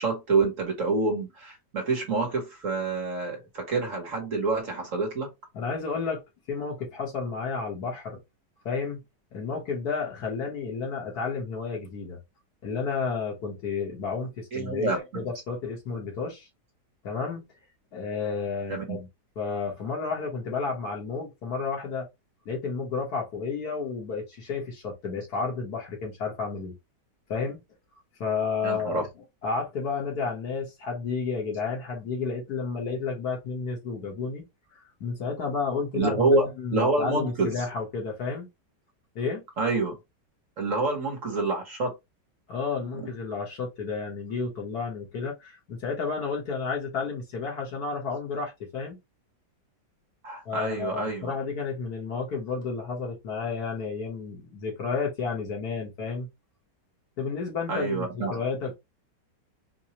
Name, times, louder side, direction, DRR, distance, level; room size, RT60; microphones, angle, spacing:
voice 1, 0.0-5.3 14.5-15.3 18.7-19.0 28.6-29.1 35.9-37.5 39.6-40.0 40.6-41.9 42.9-43.1 50.2-51.3 57.7-58.3, right 3 dB, 50° right, 1.3 m, -27 dB
voice 2, 5.5-6.2 6.5-8.2 8.7-9.0 9.3-12.2 12.6-16.5 17.0-17.4 17.9-19.1 19.4-22.1 22.5-26.7 27.3-27.6 28.2-29.1 29.4-34.4 34.7-38.5 39.2-39.4 42.5-49.0 50.5-56.3 57.2-58.8, left 5 dB, 65° left, 1.7 m, -31 dB
4.7 x 2.2 x 2.9 m
omnidirectional pair, 1.9 m